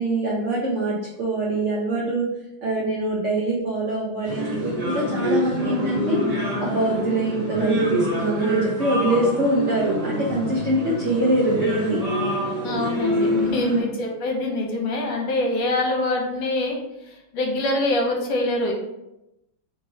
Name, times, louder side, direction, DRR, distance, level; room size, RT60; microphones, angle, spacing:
voice 1, 0.0-2.3 2.6-6.2 6.6-12.0 13.6-13.8, right 2 dB, 70° right, -3 dB, 0.6 m, -24 dB
sound 1, 4.2-13.8, equal, 35° right, 0.6 m, -26 dB
voice 2, 12.6-16.8 17.1-18.7, left 2 dB, 70° left, 0 dB, 1.5 m, -24 dB
3.6 x 3.0 x 3.9 m, 0.88 s
omnidirectional pair, 2.2 m